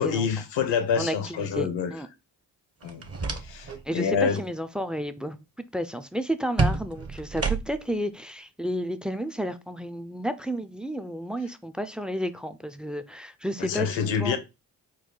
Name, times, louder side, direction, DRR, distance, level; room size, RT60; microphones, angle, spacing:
voice 1, 0.0-1.9 2.8-3.1 3.4-4.4 13.6-14.4, left 6 dB, 75° left, 0.9 m, -27 dB
voice 2, 1.0-2.1 3.9-14.4, equal, ahead, 0.5 m, -32 dB
sound 1, 2.8-3.8 4.1-4.5 6.6-8.0, right 3 dB, 35° right, 0.9 m, -29 dB
4.5 x 2.2 x 3.8 m
supercardioid pair, 40°, 45 cm